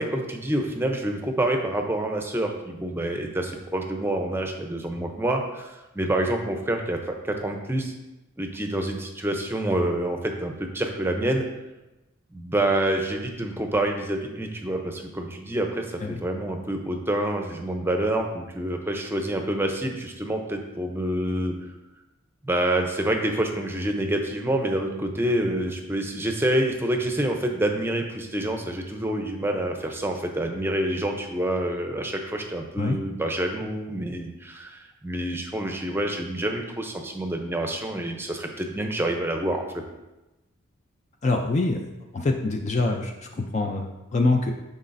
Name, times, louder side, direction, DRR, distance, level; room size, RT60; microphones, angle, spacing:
voice 1, 0.0-7.9 8.4-11.5 12.3-21.5 22.4-39.7, right 1 dB, 10° right, 3 dB, 0.6 m, -27 dB
voice 2, 41.2-44.5, left 2 dB, 35° left, 3 dB, 0.4 m, -25 dB
11.0 x 4.0 x 2.6 m, 1.0 s
head